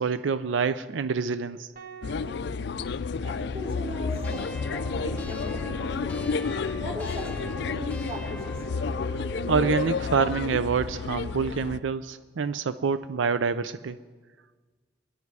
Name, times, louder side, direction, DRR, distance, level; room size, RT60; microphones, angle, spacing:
voice 1, 0.0-1.7 9.5-14.0, right 5 dB, 90° right, 13 dB, 0.5 m, -26 dB
sound 1, 1.7-4.1, right 8 dB, 50° right, 1.7 m, -48 dB
sound 2, 2.0-11.8, left 5 dB, 60° left, 0.4 m, -31 dB
voice 2, 3.2-6.3 6.8-8.6, equal, 30° right, -4 dB, 4.5 m, -38 dB
sound 3, 4.2-9.9, right 2 dB, 10° left, 0.9 m, -42 dB
23.5 x 11.0 x 4.7 m, 1.4 s
head